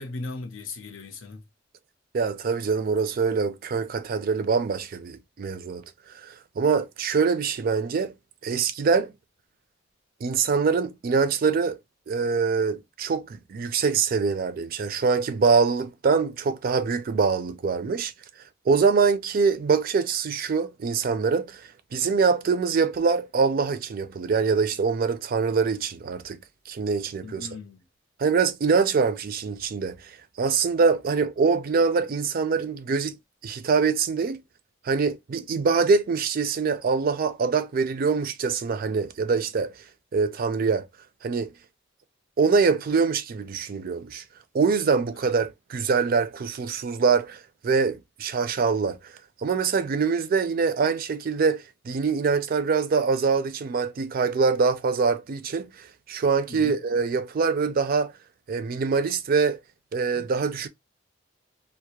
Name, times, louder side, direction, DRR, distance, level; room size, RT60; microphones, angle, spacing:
voice 1, 0.0-1.4 27.2-27.8 56.5-56.8, left 3 dB, 85° left, 0.6 m, -37 dB
voice 2, 2.1-5.8 6.1-8.1 8.4-9.1 10.2-11.8 12.1-18.1 18.7-26.4 26.7-27.5 28.2-33.2 33.4-34.4 34.8-39.7 40.1-40.9 41.2-41.5 42.4-44.2 44.5-49.1 49.4-58.1 58.5-59.6 59.9-60.7, right 5 dB, 50° right, 0.4 m, -24 dB
2.3 x 2.0 x 2.8 m
head